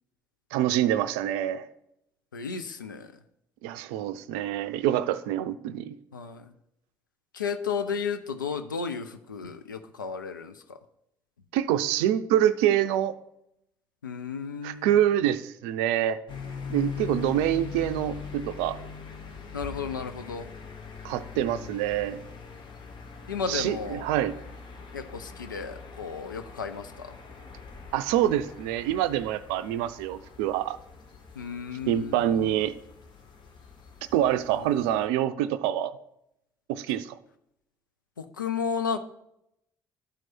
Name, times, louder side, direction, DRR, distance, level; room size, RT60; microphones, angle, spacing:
voice 1, 0.5-1.7 3.6-5.9 11.5-13.2 14.6-16.2 16.7-18.8 21.0-22.2 23.5-24.3 27.9-30.8 31.9-32.7 34.1-36.0 36.7-37.2, right 11 dB, 70° right, 12 dB, 0.4 m, -26 dB
voice 2, 2.3-3.1 6.1-6.5 7.3-10.8 14.0-14.9 19.5-20.5 23.3-24.0 24.9-27.1 31.4-32.4 38.2-39.0, left 6 dB, 90° left, 8 dB, 0.5 m, -33 dB
sound 1, 16.3-35.1, left 6 dB, 50° left, 1.2 m, -42 dB
12.0 x 4.6 x 4.3 m, 0.80 s
figure-of-eight pair, 50°, 10 cm